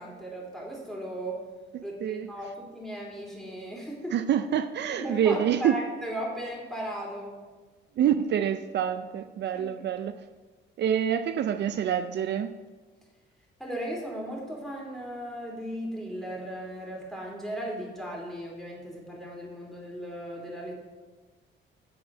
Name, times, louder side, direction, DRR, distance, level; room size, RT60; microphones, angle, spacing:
voice 1, 0.0-1.4 1.8-4.2 4.9-7.4 9.5-9.8 13.6-20.9, equal, ahead, -2 dB, 3.4 m, -36 dB
voice 2, 4.1-5.8 8.0-10.1 10.8-12.5, right 9 dB, 60° right, 8 dB, 0.5 m, -26 dB
7.8 x 7.3 x 6.2 m, 1.3 s
cardioid pair, 90°, 20 cm